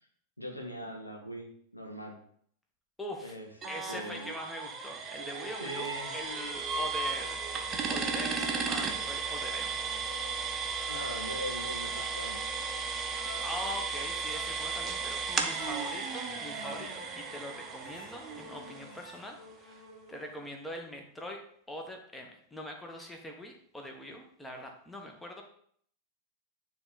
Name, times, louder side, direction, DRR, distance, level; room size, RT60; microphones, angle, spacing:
voice 1, 0.4-2.2 3.2-3.5 3.9-4.3 5.6-6.1 10.9-12.4, equal, 85° left, 2 dB, 1.3 m, -41 dB
voice 2, 3.0-3.4 3.7-7.4 7.9-9.8 13.4-21.4 21.7-25.4, left 1 dB, 10° left, 2 dB, 1.2 m, -42 dB
sound 1, 3.6-19.3, right 5 dB, 25° right, 0.9 m, -35 dB
sound 2, 5.1-20.5, left 2 dB, 50° left, 2.0 m, -50 dB
9.5 x 3.4 x 4.1 m, 0.63 s
figure-of-eight pair, 90°, 0 cm